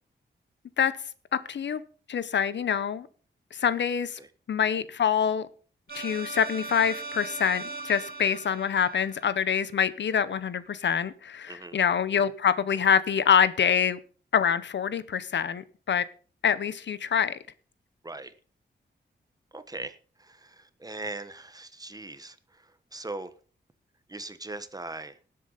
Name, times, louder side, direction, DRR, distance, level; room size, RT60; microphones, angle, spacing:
voice 1, 1.3-1.8 2.1-3.1 3.5-4.2 4.5-5.5 5.9-14.0 14.3-16.1 16.4-17.4, left 7 dB, 75° left, 15 dB, 0.8 m, -25 dB
sound 1, 5.9-9.8, right 3 dB, 55° right, 1.5 m, -39 dB
voice 2, 19.5-23.3 24.1-25.2, right 2 dB, 20° right, 12 dB, 1.1 m, -40 dB
18.5 x 7.8 x 4.0 m, 0.40 s
wide cardioid pair, 110°, 19 cm